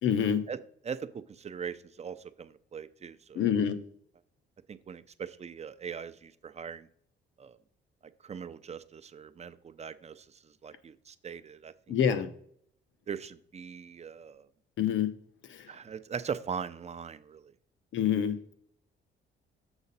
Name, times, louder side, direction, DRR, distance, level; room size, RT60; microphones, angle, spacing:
voice 1, 0.0-0.4 3.3-3.8 11.9-12.3 14.8-15.1 15.5-15.7 17.9-18.5, left 8 dB, 75° left, 11 dB, 0.9 m, -27 dB
voice 2, 0.8-3.5 4.7-6.9 7.4-7.6 8.2-10.3 10.6-12.2 13.1-14.5 15.7-17.5, right 6 dB, 35° right, 13 dB, 0.6 m, -40 dB
7.0 x 6.3 x 4.1 m, 0.65 s
cardioid pair, 90°, 20 cm